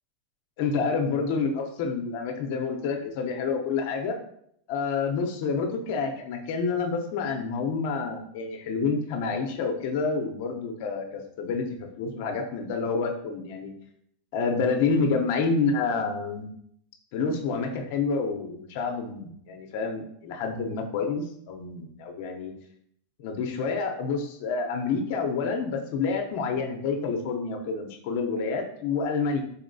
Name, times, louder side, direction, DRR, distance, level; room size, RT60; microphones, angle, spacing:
voice 1, 0.6-4.1 4.7-13.7 14.3-16.5 17.1-22.5 23.2-29.4, left 4 dB, 60° left, 4 dB, 0.7 m, -28 dB
4.1 x 2.8 x 2.6 m, 0.70 s
supercardioid pair, 125°, 0 cm